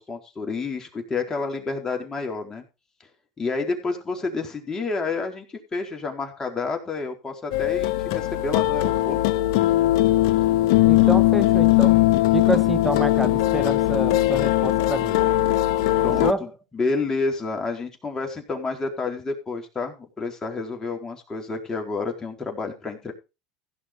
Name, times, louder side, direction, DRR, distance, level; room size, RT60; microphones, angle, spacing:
voice 1, 0.0-2.6 3.4-5.5 5.7-9.2 16.0-23.1, left 4 dB, 25° left, 4.2 m, -29 dB
sound 1, 7.5-16.3, left 16 dB, 75° left, 0.7 m, -20 dB
voice 2, 10.8-12.0 12.3-15.2 16.2-16.5, right 1 dB, ahead, 1.4 m, -27 dB
16.0 x 6.3 x 5.2 m
hypercardioid pair, 90°, 3 cm